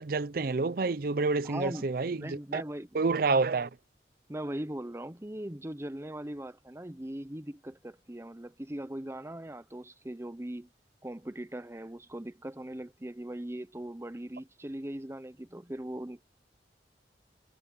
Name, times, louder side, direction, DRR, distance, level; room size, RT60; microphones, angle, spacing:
voice 1, 0.0-2.6 2.9-3.7, right 3 dB, 55° right, 0.6 m, -28 dB
voice 2, 1.4-3.4 4.3-10.7 11.0-16.2, right 1 dB, 15° right, 0.8 m, -40 dB
head